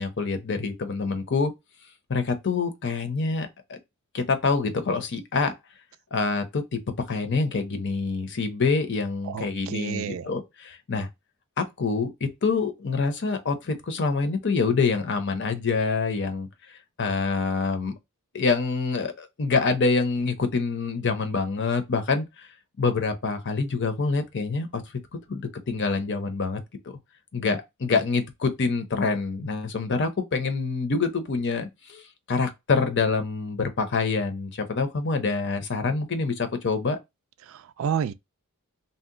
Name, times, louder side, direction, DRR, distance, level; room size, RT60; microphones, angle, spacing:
voice 1, 0.0-1.5 2.1-3.8 4.1-5.5 6.1-6.8 7.1-11.1 11.6-18.0 18.3-22.2 22.8-24.8 25.3-26.6 27.3-32.0 32.3-37.0, left 4 dB, 50° left, 0.7 m, -26 dB
voice 2, 9.3-10.3 37.5-38.1, right 8 dB, 60° right, 0.3 m, -30 dB
2.7 x 2.1 x 3.7 m
head